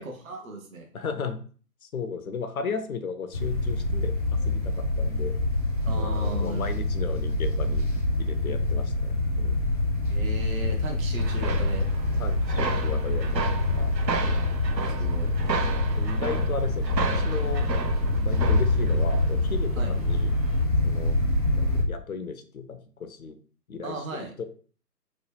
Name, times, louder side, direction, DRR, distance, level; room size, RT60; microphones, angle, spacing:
voice 1, 0.0-0.9 5.8-6.8 10.1-11.9 14.3-15.3 19.7-19.9 23.8-24.3, right 2 dB, 55° right, 2 dB, 0.8 m, -37 dB
voice 2, 0.9-1.4 1.8-5.3 5.9-9.7 12.2-14.0 15.2-15.5 16.0-17.7 18.2-20.3 20.8-21.2 21.6-23.4 23.7-24.0 24.4-24.5, left 5 dB, 60° left, 9 dB, 0.5 m, -35 dB
sound 1, 3.3-21.8, left 2 dB, 25° right, 0.5 m, -25 dB
sound 2, 11.2-20.6, right 5 dB, 90° right, 0.6 m, -34 dB
3.0 x 2.1 x 3.2 m, 0.41 s
figure-of-eight pair, 140°, 49 cm